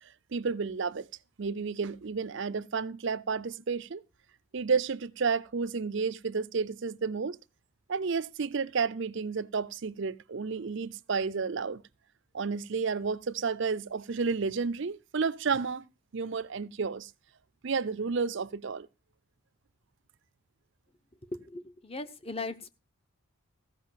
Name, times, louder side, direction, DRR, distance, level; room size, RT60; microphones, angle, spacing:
voice 1, 0.0-1.1 1.4-4.0 4.5-7.4 7.9-11.8 12.3-15.8 16.1-17.1 17.6-18.9, right 5 dB, 55° right, 0.5 m, -31 dB
voice 2, 21.2-22.7, left 3 dB, 25° left, 0.9 m, -38 dB
15.5 x 5.5 x 7.3 m
head